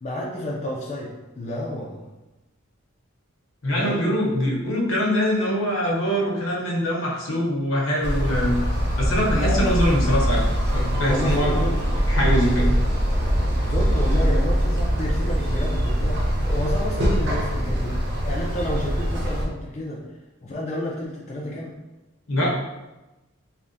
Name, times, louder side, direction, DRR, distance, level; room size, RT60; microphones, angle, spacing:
voice 1, 0.0-2.1 3.7-4.2 9.3-9.7 11.0-11.9 13.6-18.0 18.2-20.0 20.4-21.7, left 1 dB, 30° left, -4 dB, 0.3 m, -30 dB
voice 2, 3.6-8.6 9.0-10.4 10.7-11.6 12.1-12.7 22.3-22.6, equal, 75° left, -3 dB, 0.7 m, -23 dB
sound 1, 8.0-19.4, equal, 50° right, 0.5 m, -23 dB
3.3 x 2.1 x 2.5 m, 1.0 s
head